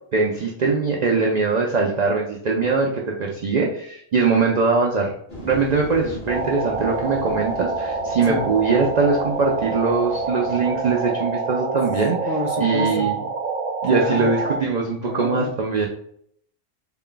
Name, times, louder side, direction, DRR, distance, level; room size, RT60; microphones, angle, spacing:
voice 1, 0.1-5.1 5.4-12.2 12.6-13.2 13.8-15.9, right 4 dB, 70° right, -1 dB, 0.4 m, -21 dB
sound 1, 5.3-10.9, left 2 dB, 45° left, 1.0 m, -40 dB
sound 2, 6.3-14.6, right 4 dB, 85° right, 0.9 m, -27 dB
voice 2, 12.3-13.1 13.8-14.3 15.0-15.6, left 3 dB, 65° left, 3 dB, 0.7 m, -29 dB
3.9 x 2.2 x 3.7 m, 0.67 s
omnidirectional pair, 1.3 m